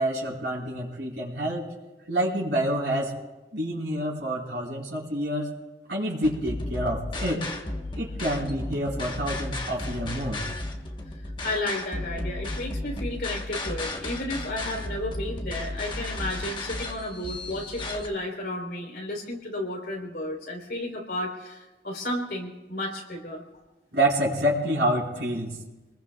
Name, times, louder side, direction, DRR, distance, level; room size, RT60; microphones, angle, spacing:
voice 1, 0.0-1.7 2.1-3.1 3.5-5.5 5.9-7.4 8.0-10.4 23.9-25.6, right 1 dB, 80° right, -4 dB, 4.6 m, -27 dB
sound 1, 6.2-18.1, left 2 dB, 25° left, 1.3 m, -34 dB
voice 2, 11.2-23.4, left 1 dB, 65° left, 0 dB, 4.0 m, -33 dB
27.5 x 20.5 x 2.4 m, 1.1 s
head